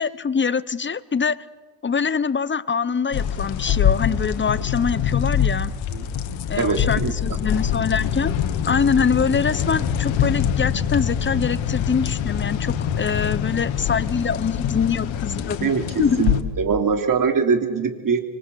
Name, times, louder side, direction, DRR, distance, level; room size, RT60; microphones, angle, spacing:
voice 1, 0.0-1.5 1.8-5.7 6.5-8.3 8.6-15.7 16.0-16.3, left 6 dB, 25° left, 17 dB, 0.9 m, -24 dB
sound 1, 3.1-16.4, left 9 dB, 85° left, 2.0 m, -24 dB
voice 2, 6.5-7.1 15.6-18.2, right 5 dB, 45° right, 6 dB, 3.4 m, -22 dB
26.0 x 24.0 x 8.4 m, 1.2 s
cardioid pair, 100°, 45 cm